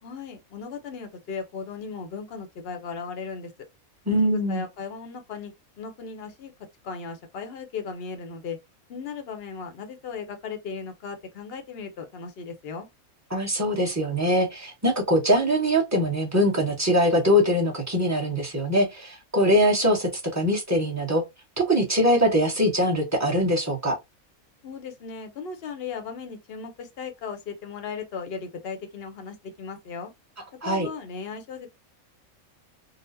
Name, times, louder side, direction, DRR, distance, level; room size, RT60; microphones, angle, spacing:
voice 1, 0.0-3.5 4.3-6.5 6.8-8.6 8.9-12.9 24.6-30.1 30.6-31.7, left 5 dB, 55° left, 0.8 m, -36 dB
voice 2, 4.1-4.6 13.3-21.2 21.6-24.0 30.6-30.9, equal, 15° right, 0.9 m, -22 dB
4.1 x 2.1 x 2.6 m
omnidirectional pair, 1.5 m